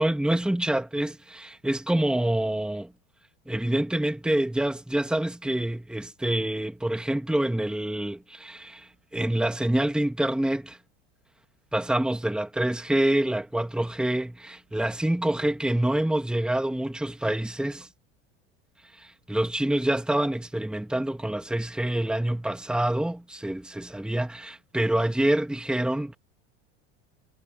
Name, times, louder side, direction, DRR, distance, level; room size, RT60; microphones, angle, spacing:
voice 1, 0.0-2.9 3.5-10.8 11.7-17.9 18.9-26.2, right 1 dB, 5° right, 1.7 m, -26 dB
supercardioid pair, 100°, 29 cm